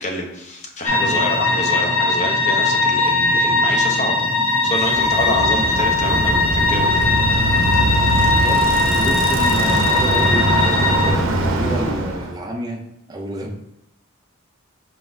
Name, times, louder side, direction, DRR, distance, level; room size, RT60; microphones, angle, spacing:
voice 1, 0.0-4.2 4.4-7.1, left 1 dB, 35° left, 1 dB, 0.7 m, -27 dB
sound 1, 0.9-11.1, left 3 dB, 75° left, 1.1 m, -19 dB
voice 2, 4.7-5.1 8.4-8.7 8.9-12.8 13.1-13.5, right 1 dB, 20° right, 0 dB, 0.4 m, -29 dB
Bicycle, 4.8-12.4, right 1 dB, 70° right, 0.6 m, -22 dB
4.7 x 3.9 x 2.6 m, 0.83 s
head